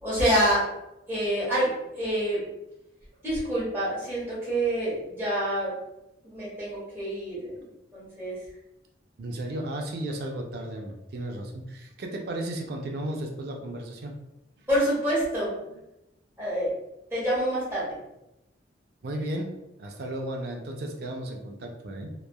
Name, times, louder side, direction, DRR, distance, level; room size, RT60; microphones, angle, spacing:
voice 1, 0.0-0.6 1.1-2.4 3.2-5.7 6.2-7.6 7.9-8.4 14.7-15.5 16.4-16.7 17.1-18.0, right 1 dB, 15° right, -9 dB, 1.2 m, -27 dB
voice 2, 9.2-14.1 19.0-19.5 19.8-22.1, right 1 dB, 55° right, 2 dB, 0.4 m, -34 dB
3.1 x 2.2 x 2.2 m, 0.90 s
head